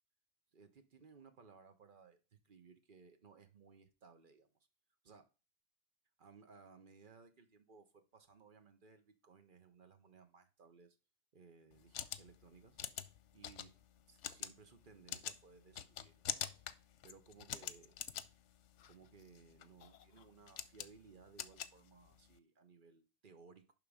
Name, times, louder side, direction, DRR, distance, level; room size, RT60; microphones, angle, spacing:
voice 1, 0.5-4.5 5.0-5.3 6.2-11.0 11.3-12.8 13.3-13.8 14.1-16.4 17.0-18.0 18.8-23.7, right 5 dB, 45° right, 1.1 m, -61 dB
sound 1, 11.7-22.4, left 10 dB, 85° left, 1.0 m, -46 dB
11.0 x 3.7 x 5.0 m
omnidirectional pair, 1.2 m